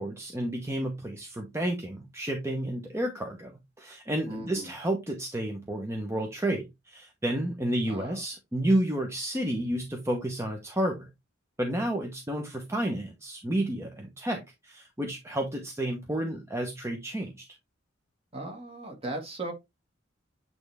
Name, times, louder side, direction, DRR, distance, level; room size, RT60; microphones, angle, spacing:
voice 1, 0.0-11.1 11.6-17.4, right 1 dB, 15° right, 1.0 m, -31 dB
voice 2, 4.3-4.7 7.9-8.2 18.3-19.5, right 2 dB, 30° right, 1.8 m, -37 dB
8.8 x 3.4 x 3.4 m
head